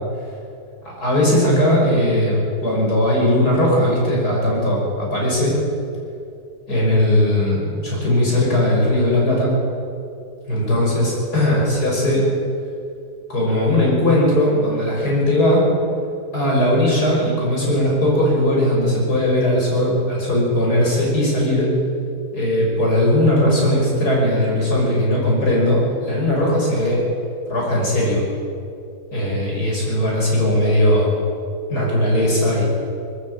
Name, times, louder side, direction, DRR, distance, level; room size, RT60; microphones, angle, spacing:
voice 1, 0.8-5.5 6.7-9.5 10.5-12.3 13.3-15.7 16.3-21.7 22.3-27.0 27.5-28.2 29.1-31.1 31.7-32.6, left 1 dB, 75° left, -3 dB, 6.6 m, -18 dB
20.5 x 14.5 x 8.8 m, 2.5 s
omnidirectional pair, 1.7 m